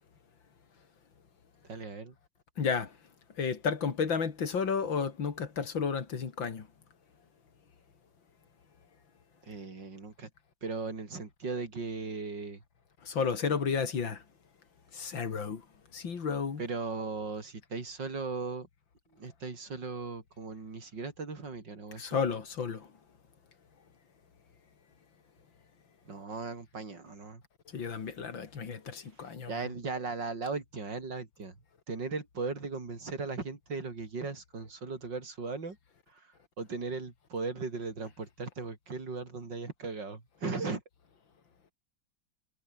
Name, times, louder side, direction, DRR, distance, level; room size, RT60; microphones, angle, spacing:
voice 1, 1.7-2.1 9.4-10.3 10.6-12.6 16.6-18.7 19.2-22.2 26.0-27.4 29.5-31.5 31.9-35.8 36.1-40.8, right 4 dB, 65° right, 4.7 m, -37 dB
voice 2, 2.6-2.9 3.4-6.7 13.0-14.2 14.9-15.6 15.9-16.6 22.0-22.9 27.7-29.7, left 6 dB, 70° left, 3.1 m, -32 dB
omnidirectional pair, 2.1 m